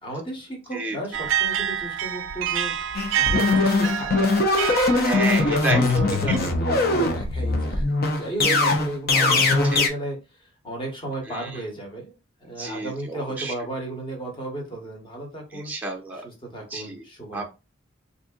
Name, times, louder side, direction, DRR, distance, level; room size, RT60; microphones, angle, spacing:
voice 1, 0.0-2.7 3.1-4.1 5.6-10.2 10.6-12.1 12.4-15.7 16.1-17.5, right 1 dB, 25° left, 1 dB, 1.3 m, -34 dB
sound 1, 1.1-6.4, right 9 dB, 70° right, 0.4 m, -28 dB
sound 2, 2.9-9.9, left 3 dB, 50° left, 0.7 m, -21 dB
voice 2, 5.0-5.9 9.1-9.4 9.7-9.9 11.3-11.6 12.6-13.5 15.5-16.2 16.7-17.0 17.3-17.4, right 2 dB, 10° right, 0 dB, 0.5 m, -30 dB
4.1 x 2.7 x 2.4 m, 0.28 s
head